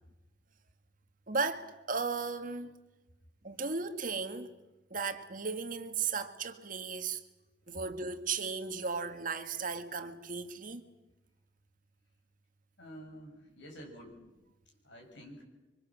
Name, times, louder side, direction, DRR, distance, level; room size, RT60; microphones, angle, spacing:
voice 1, 1.3-2.7 3.4-4.5 4.9-7.2 7.7-10.9, right 4 dB, 50° right, 1.8 m, -35 dB
voice 2, 12.8-14.3 14.8-15.4, equal, 80° left, 6.8 m, -49 dB
26.0 x 24.5 x 7.4 m
head